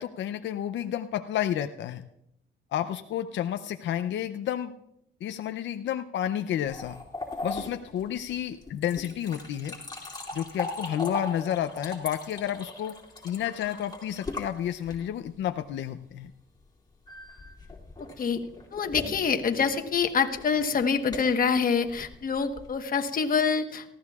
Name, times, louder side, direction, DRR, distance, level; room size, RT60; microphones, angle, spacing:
voice 1, 0.0-2.0 2.7-4.7 5.2-7.0 7.4-9.8 10.3-13.0 13.2-16.3, left 10 dB, 70° left, 8 dB, 0.6 m, -31 dB
sound 1, 6.7-15.3 17.1-22.8, left 2 dB, 20° left, 2.7 m, -39 dB
voice 2, 18.7-23.8, left 6 dB, 45° left, 6 dB, 1.2 m, -26 dB
19.0 x 14.5 x 2.4 m, 0.79 s
cardioid pair, 90°, 20 cm